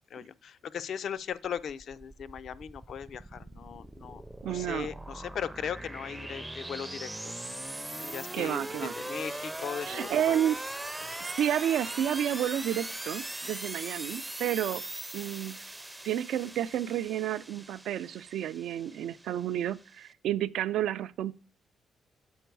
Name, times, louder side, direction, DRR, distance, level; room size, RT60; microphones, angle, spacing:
voice 1, 0.1-7.3 8.0-10.5 11.0-11.2, left 8 dB, 60° left, 0.4 m, -38 dB
sound 1, 1.4-20.1, right 1 dB, 10° right, 0.4 m, -40 dB
voice 2, 4.4-4.9 8.3-8.9 9.9-10.6 11.2-14.8 15.1-15.6 16.0-21.3, right 11 dB, 80° right, 0.3 m, -30 dB
7.9 x 4.5 x 4.6 m
cardioid pair, 90°, 0 cm